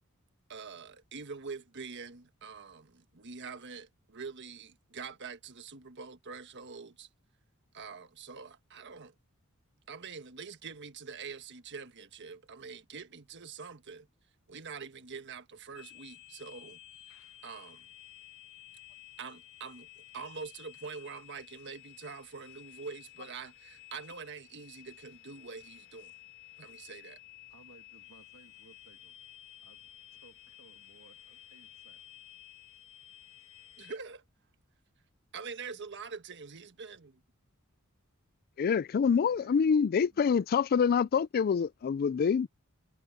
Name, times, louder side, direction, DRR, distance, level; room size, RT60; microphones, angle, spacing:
voice 1, 0.5-7.1 7.7-9.1 9.9-14.1 14.5-16.8 17.4-17.9 19.2-26.1 26.6-27.2 33.8-34.2 35.3-37.2, right 5 dB, 55° right, 1.4 m, -45 dB
sound 1, 15.7-34.0, left 14 dB, 65° left, 2.0 m, -54 dB
voice 2, 27.5-29.2 29.6-32.1 32.7-33.1 38.5-40.4, right 3 dB, 75° right, 2.2 m, -61 dB
voice 3, 38.6-42.5, left 6 dB, 45° left, 0.3 m, -26 dB
head